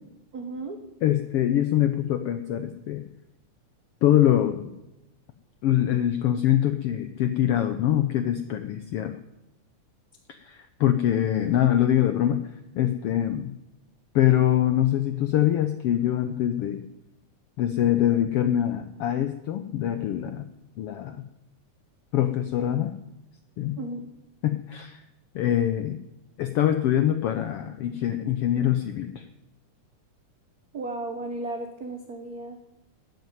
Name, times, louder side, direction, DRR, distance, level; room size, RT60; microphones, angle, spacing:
voice 1, 0.3-0.8 23.8-24.1 30.7-32.6, right 2 dB, 80° right, 5 dB, 0.8 m, -34 dB
voice 2, 1.0-3.0 4.0-4.7 5.6-9.2 10.3-12.4 12.7-13.5 14.1-16.8 17.6-20.5 20.8-21.2 22.1-22.9 23.6-23.8 24.4-25.0 25.3-26.0 26.4-29.2, left 11 dB, 80° left, 9 dB, 1.3 m, -24 dB
13.0 x 7.8 x 9.2 m, 0.91 s
omnidirectional pair, 3.5 m